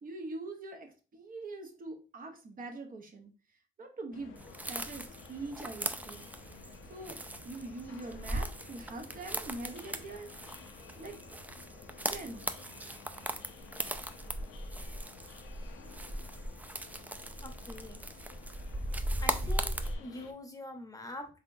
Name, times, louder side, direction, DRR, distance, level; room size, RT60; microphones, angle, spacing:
voice 1, 0.0-3.3 3.8-6.3 6.9-7.2 7.4-10.7 10.9-11.2 12.0-12.5, right 2 dB, 45° right, 4 dB, 0.8 m, -43 dB
sound 1, 4.1-20.3, left 5 dB, 85° left, 0.6 m, -53 dB
sound 2, 4.4-19.9, right 1 dB, 10° right, 0.3 m, -39 dB
voice 2, 17.4-18.4 19.2-21.4, left 1 dB, 15° left, 4 dB, 0.8 m, -45 dB
3.6 x 3.4 x 2.6 m, 0.35 s
cardioid pair, 90°, 20 cm